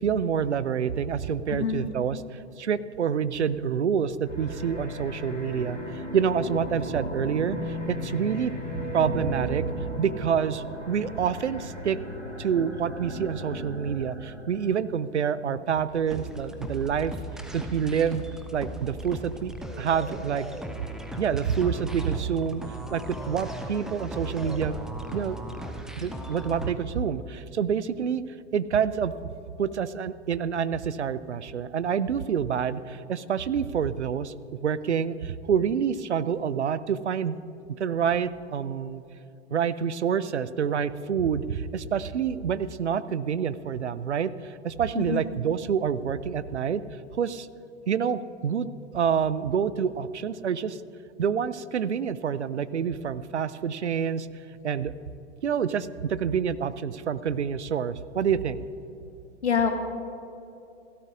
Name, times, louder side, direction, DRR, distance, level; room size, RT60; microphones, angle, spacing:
voice 1, 0.0-8.5 8.9-9.6 10.0-12.0 12.4-17.1 17.5-18.3 18.5-20.5 21.2-22.6 22.9-24.8 25.1-25.4 26.0-28.2 28.5-29.1 29.6-37.4 37.8-39.0 39.5-46.8 47.1-47.5 47.9-48.7 48.9-50.8 51.2-54.3 54.6-54.9 55.4-58.7, right 7 dB, 75° right, 17 dB, 0.6 m, -27 dB
voice 2, 1.5-1.8 45.0-45.2 59.4-59.7, left 6 dB, 70° left, 4 dB, 1.7 m, -25 dB
sound 1, 4.2-14.8, equal, 90° right, 2.2 m, -35 dB
sound 2, 16.1-26.7, right 1 dB, ahead, 0.4 m, -37 dB
28.5 x 13.0 x 2.5 m, 2.8 s
figure-of-eight pair, 95°, 35 cm